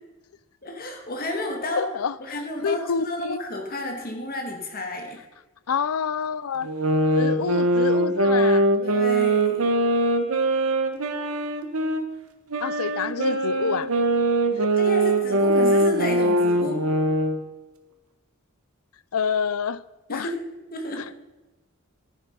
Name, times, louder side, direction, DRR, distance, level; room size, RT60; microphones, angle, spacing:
voice 1, 0.6-1.8 2.2-5.2 8.8-9.7 14.8-16.8 20.1-20.4 20.7-21.1, left 1 dB, 45° left, 4 dB, 2.2 m, -31 dB
voice 2, 1.7-2.1 2.6-3.4 5.7-6.7 7.1-8.7 12.6-13.9 14.5-14.7 19.1-19.8 20.1-20.3 21.0-21.1, left 6 dB, 85° left, 17 dB, 0.5 m, -27 dB
sound 1, 6.6-12.0 12.5-17.4, right 1 dB, 90° right, 1.3 m, -22 dB
11.0 x 9.8 x 5.5 m, 1.1 s
head